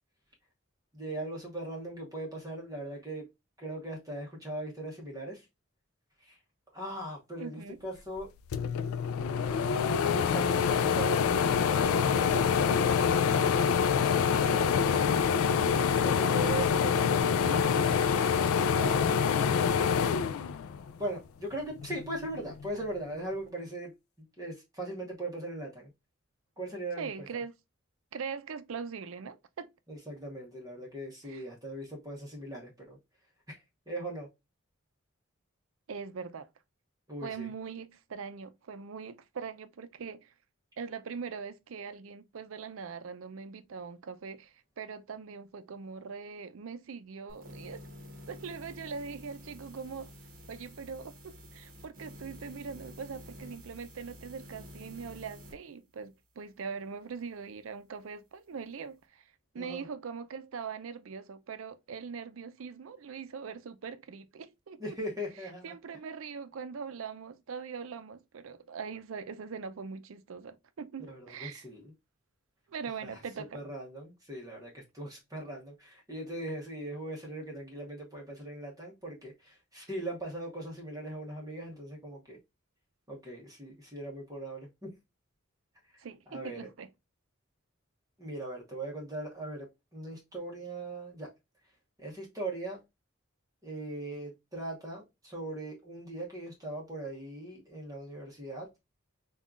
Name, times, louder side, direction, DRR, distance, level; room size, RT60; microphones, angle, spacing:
voice 1, 0.9-3.3 3.6-5.4 6.2-6.4 6.7-8.3 10.0-13.2 14.5-17.8 18.7-19.4 21.0-25.9 26.6-27.1 29.9-33.0 33.5-33.6 33.9-34.3 37.1-37.5 59.6-59.9 64.8-65.7 71.1-71.9 73.0-73.2 73.5-82.4 83.1-84.9 86.3-86.7 88.2-89.7 89.9-91.3 92.0-92.8 93.6-98.7, right 1 dB, 15° right, 0.9 m, -39 dB
voice 2, 7.4-7.8 27.0-27.5 28.1-29.7 31.2-31.4 35.9-36.5 37.2-40.3 40.8-47.8 48.3-50.1 50.5-59.2 59.5-65.0 65.6-71.7 72.7-73.6 86.0-86.9, right 5 dB, 70° right, 0.5 m, -41 dB
sound 1, 8.2-8.3 8.5-21.1 21.5-22.7, left 7 dB, 80° left, 0.3 m, -26 dB
sound 2, 47.3-55.6, left 1 dB, 45° right, 1.0 m, -49 dB
5.3 x 2.3 x 2.4 m
head